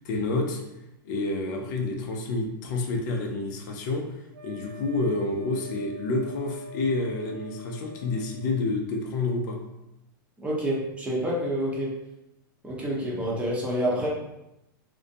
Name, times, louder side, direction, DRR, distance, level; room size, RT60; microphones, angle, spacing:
voice 1, 0.0-0.6 1.0-4.0 4.4-9.6, left 2 dB, 55° left, 2 dB, 0.5 m, -28 dB
Wind instrument woodwind instrument, 4.3-8.6, left 3 dB, 85° right, 0.5 m, -46 dB
voice 2, 10.4-11.9 12.6-14.1, equal, 10° right, -5 dB, 0.7 m, -28 dB
2.5 x 2.2 x 2.6 m, 0.89 s
hypercardioid pair, 130°, 12 cm